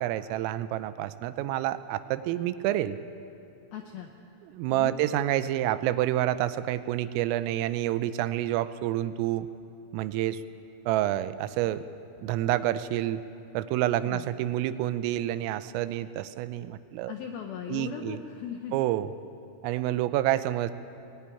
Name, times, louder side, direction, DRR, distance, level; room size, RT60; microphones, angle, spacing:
voice 1, 0.0-3.0 4.5-9.5 9.9-10.4 10.9-11.8 12.2-13.2 13.5-17.1 17.7-18.2 18.7-19.1 19.6-20.7, right 13 dB, 90° right, 13 dB, 3.4 m, -28 dB
voice 2, 3.7-4.1 4.7-5.0 14.0-14.3 17.1-18.7, left 9 dB, 80° left, 3 dB, 2.2 m, -38 dB
21.0 x 16.5 x 9.9 m, 2.8 s
omnidirectional pair, 5.8 m